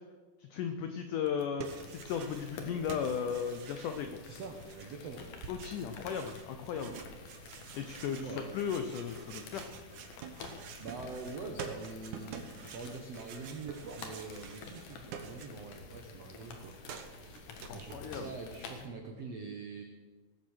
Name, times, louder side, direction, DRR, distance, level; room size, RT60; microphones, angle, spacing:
voice 1, 0.4-4.2 5.5-7.0 7.8-9.7 17.6-18.4, left 7 dB, 90° left, 7 dB, 1.8 m, -36 dB
sound 1, 1.3-2.6 2.9-15.9 16.1-18.0, right 6 dB, 65° right, 2.1 m, -48 dB
sound 2, 1.7-18.9, left 4 dB, 60° left, 2.8 m, -50 dB
voice 2, 4.2-5.2 8.2-8.5 10.5-16.8 17.1-19.8, right 4 dB, 85° right, 3 dB, 1.4 m, -45 dB
19.0 x 7.5 x 6.4 m, 1.4 s
omnidirectional pair, 4.7 m